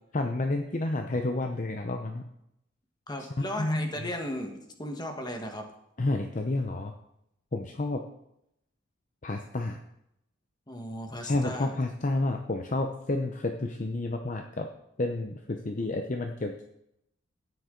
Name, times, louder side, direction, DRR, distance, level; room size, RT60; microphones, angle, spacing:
voice 1, 0.1-2.3 3.4-4.1 6.0-6.9 7.5-8.0 9.2-9.8 11.2-14.7 15.0-16.6, left 2 dB, 40° left, 4 dB, 0.7 m, -30 dB
voice 2, 3.1-5.6 10.7-11.7, left 1 dB, 20° left, 4 dB, 1.4 m, -36 dB
13.5 x 9.4 x 3.8 m, 0.79 s
head